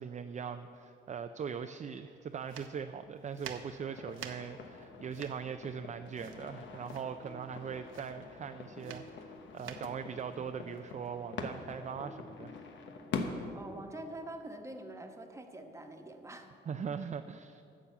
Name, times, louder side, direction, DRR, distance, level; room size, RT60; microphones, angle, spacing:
voice 1, 0.0-12.6 16.7-17.6, right 7 dB, 40° right, 8 dB, 0.4 m, -41 dB
sound 1, 2.4-11.7, right 8 dB, 85° right, 0.8 m, -50 dB
sound 2, 3.8-13.5, left 4 dB, 75° left, 1.0 m, -44 dB
sound 3, 7.2-8.5 8.8-14.1, left 1 dB, 40° left, 1.1 m, -56 dB
voice 2, 13.5-16.5, right 1 dB, 15° right, 4 dB, 1.2 m, -45 dB
10.0 x 6.9 x 7.0 m, 2.6 s
cardioid pair, 80°, 20 cm